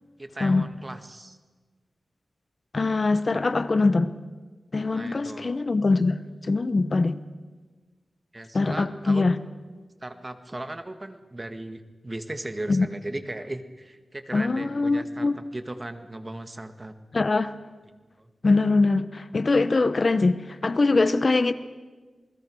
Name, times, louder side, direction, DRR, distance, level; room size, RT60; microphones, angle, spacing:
voice 1, 0.2-1.4 4.9-5.6 8.3-9.4 10.0-16.9 18.2-18.3, right 1 dB, 25° right, 8 dB, 1.8 m, -37 dB
voice 2, 2.7-4.1 4.7-7.2 8.5-9.4 12.7-12.9 14.3-15.4 17.1-17.5 18.4-21.5, left 3 dB, 45° left, 13 dB, 0.9 m, -23 dB
28.0 x 20.5 x 6.3 m, 1.4 s
wide cardioid pair, 85°, 0 cm